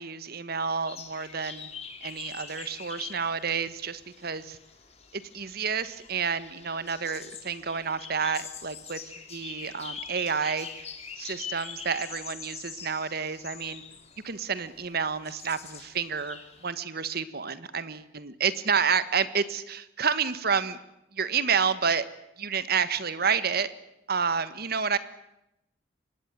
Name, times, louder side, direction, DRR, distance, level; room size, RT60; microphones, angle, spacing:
voice 1, 0.0-1.7 2.0-4.6 5.1-10.7 11.2-13.8 14.2-20.8 21.1-22.0 22.4-23.7 24.1-25.0, right 6 dB, 55° right, 14 dB, 1.4 m, -29 dB
sound 1, 0.9-16.7, left 6 dB, 35° left, 3.3 m, -44 dB
24.5 x 19.5 x 9.3 m, 0.87 s
head